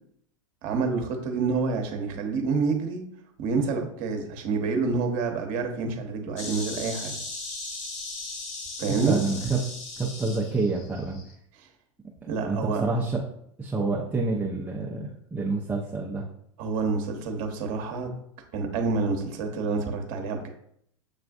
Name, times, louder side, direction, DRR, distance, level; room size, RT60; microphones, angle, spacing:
voice 1, 0.6-3.0 3.4-7.2 8.8-9.2 12.3-12.8 16.6-18.1 18.5-20.5, right 4 dB, 50° right, 4 dB, 1.0 m, -28 dB
Insect, 6.4-11.3, left 3 dB, 50° left, 1.1 m, -37 dB
voice 2, 8.9-9.6 10.0-11.2 12.5-13.2 13.6-16.3, right 3 dB, 10° right, -3 dB, 0.6 m, -28 dB
7.0 x 2.4 x 2.4 m, 0.69 s
hypercardioid pair, 90°, 17 cm